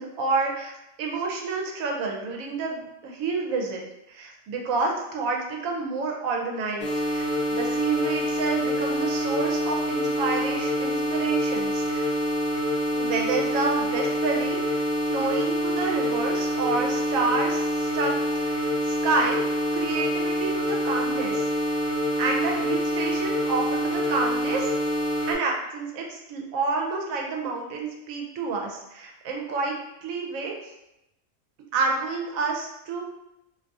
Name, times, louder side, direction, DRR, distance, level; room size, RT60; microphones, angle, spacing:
voice 1, 0.0-3.8 4.1-12.1 12.9-19.4 19.7-21.5 22.2-24.7 25.3-29.8 30.0-30.5 31.7-33.0, right 4 dB, 80° right, 0 dB, 1.0 m, -29 dB
sound 1, 6.8-25.3, equal, 55° left, 0.5 m, -26 dB
2.5 x 2.3 x 2.5 m, 0.86 s
omnidirectional pair, 1.4 m